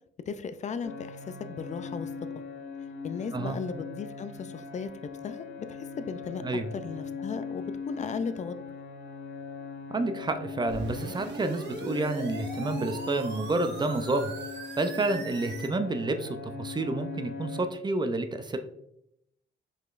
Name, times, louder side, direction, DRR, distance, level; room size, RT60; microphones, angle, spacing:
voice 1, 0.3-2.1 3.0-4.9 5.2-6.4 6.7-8.5, left 5 dB, 35° left, 12 dB, 0.4 m, -36 dB
sound 1, 0.8-17.7, left 5 dB, 70° left, 1.0 m, -40 dB
voice 2, 9.9-14.3 14.8-18.6, right 2 dB, 20° right, 8 dB, 0.5 m, -29 dB
sound 2, 10.7-15.7, right 3 dB, 60° right, 1.0 m, -41 dB
5.2 x 3.9 x 2.5 m, 0.78 s
cardioid pair, 90°, 20 cm